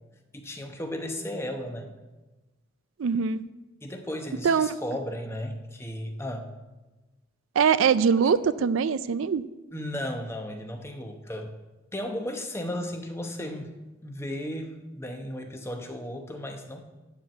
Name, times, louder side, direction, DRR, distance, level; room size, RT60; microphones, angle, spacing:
voice 1, 0.3-1.9 3.8-6.5 9.7-11.5 11.9-13.7 14.0-16.8, left 1 dB, 10° left, 4 dB, 0.8 m, -35 dB
voice 2, 3.0-3.4 4.4-4.7 7.6-9.4, right 6 dB, 70° right, 15 dB, 0.4 m, -22 dB
11.0 x 4.6 x 7.8 m, 1.1 s
head